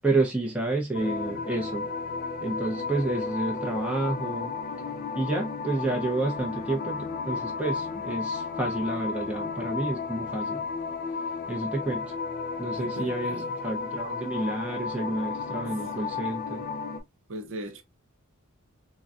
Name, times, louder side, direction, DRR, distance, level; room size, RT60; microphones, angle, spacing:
voice 1, 0.0-1.9 2.4-4.5 5.2-10.6 11.5-12.0 12.6-16.6, right 2 dB, 5° right, 0.6 m, -30 dB
sound 1, 0.9-17.0, left 4 dB, 40° left, 0.4 m, -33 dB
voice 2, 12.8-13.6 16.0-16.3 17.3-17.8, right 1 dB, 60° right, 0.5 m, -39 dB
3.7 x 2.2 x 2.3 m
head